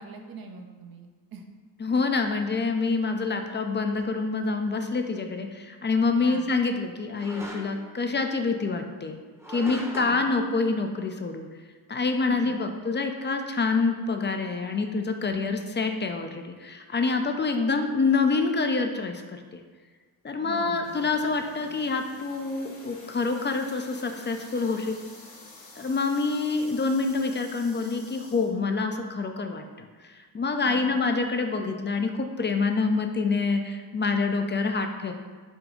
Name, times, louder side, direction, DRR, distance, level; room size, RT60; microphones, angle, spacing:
voice 1, 0.0-1.5 6.2-6.5 10.0-10.3 12.3-12.8 15.3-15.6 20.4-21.0 30.6-31.0, right 4 dB, 50° right, 4 dB, 0.7 m, -43 dB
voice 2, 1.8-9.2 9.5-11.5 11.9-19.6 20.2-25.0 25.8-29.6 30.0-35.1, left 4 dB, 25° left, 5 dB, 0.5 m, -26 dB
sound 1, 4.0-4.2 7.1-7.9 9.4-10.2, equal, 5° right, 0.8 m, -39 dB
sound 2, 20.8-28.5, left 2 dB, 85° left, 1.0 m, -48 dB
5.1 x 2.3 x 3.8 m, 1.5 s
supercardioid pair, 45°, 47 cm